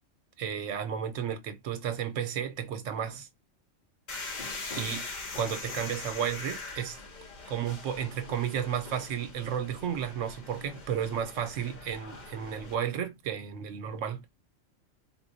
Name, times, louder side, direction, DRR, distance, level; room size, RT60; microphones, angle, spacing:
voice 1, 0.4-3.3 4.7-5.0 5.4-7.0 7.5-14.2, right 8 dB, 75° right, 1.0 m, -33 dB
sound 1, 4.1-12.8, left 3 dB, 45° left, 0.7 m, -42 dB
4.2 x 2.2 x 2.5 m
omnidirectional pair, 1.4 m